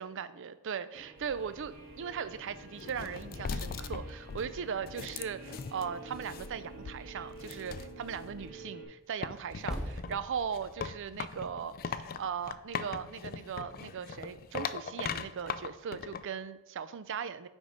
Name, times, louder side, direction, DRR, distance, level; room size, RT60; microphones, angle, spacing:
voice 1, 0.0-17.5, right 7 dB, 60° right, 13 dB, 0.4 m, -38 dB
Guitar, 0.9-8.8, right 3 dB, 45° right, 1.2 m, -49 dB
sound 1, 1.2-8.5 9.2-16.2, left 6 dB, 45° left, 0.4 m, -40 dB
Percussion, 9.7-14.5, equal, ahead, 1.3 m, -46 dB
9.4 x 3.6 x 5.1 m, 0.97 s
head